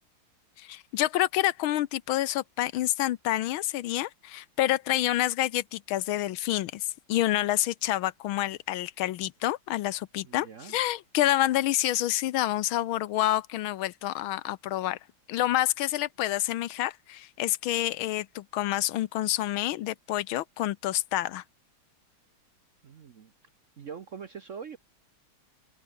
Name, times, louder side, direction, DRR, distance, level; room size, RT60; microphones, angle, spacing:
voice 1, 0.6-15.0 15.3-21.4, left 14 dB, 80° left, 1.5 m, -28 dB
voice 2, 10.2-10.8 22.8-23.3 23.8-24.8, right 6 dB, 50° right, 0.9 m, -43 dB
omnidirectional pair, 2.3 m